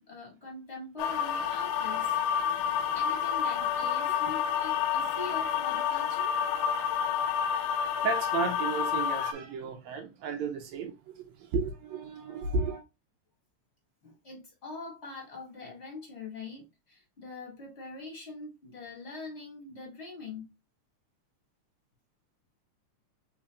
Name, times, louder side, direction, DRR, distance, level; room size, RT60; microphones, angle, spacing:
voice 1, 0.0-2.2 2.9-6.3 14.0-20.5, left 3 dB, 25° left, 1.7 m, -43 dB
sound 1, 1.0-9.3, left 8 dB, 80° left, 1.6 m, -29 dB
voice 2, 8.0-12.8, right 4 dB, 75° right, 1.8 m, -33 dB
4.2 x 4.2 x 2.4 m
omnidirectional pair, 3.6 m